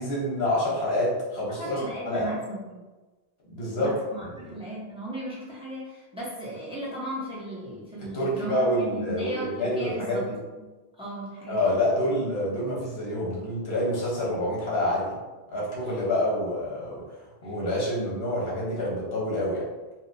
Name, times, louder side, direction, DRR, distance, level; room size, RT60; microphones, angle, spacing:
voice 1, 0.0-1.8 2.0-2.3 3.5-3.9 4.2-4.6 8.1-10.3 11.5-15.1 15.5-19.6, left 1 dB, 90° left, -5 dB, 1.3 m, -27 dB
voice 2, 1.5-2.8 3.7-10.3 11.0-11.7 17.4-17.5, right 1 dB, 5° right, -6 dB, 0.6 m, -36 dB
4.2 x 2.1 x 2.6 m, 1.2 s
omnidirectional pair, 1.0 m